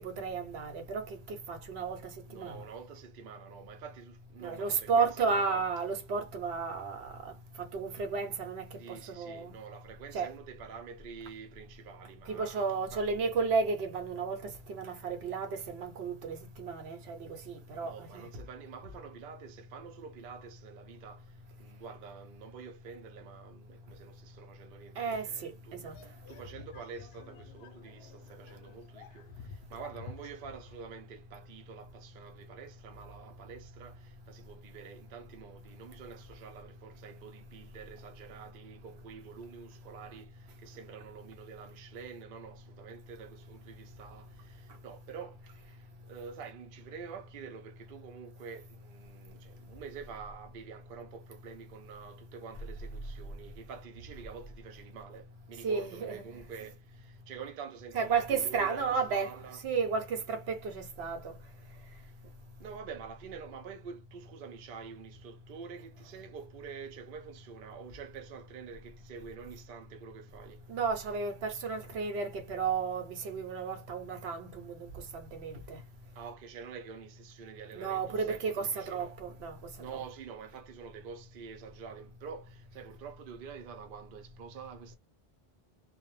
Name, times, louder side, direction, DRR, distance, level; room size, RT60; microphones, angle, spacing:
voice 1, 0.0-2.6 4.4-9.6 10.1-10.3 12.3-18.3 25.0-25.9 55.6-56.2 57.9-61.4 70.7-75.8 77.7-79.6 79.9-80.0, right 5 dB, 85° right, 0.9 m, -33 dB
voice 2, 2.3-5.6 8.8-12.6 12.9-13.1 17.8-59.6 62.0-62.2 62.6-70.7 75.7-75.8 76.1-79.2 79.8-85.0, right 6 dB, 65° right, 0.7 m, -47 dB
sound 1, 25.9-30.9, left 5 dB, 90° left, 0.8 m, -51 dB
2.2 x 2.1 x 3.0 m
omnidirectional pair, 1.0 m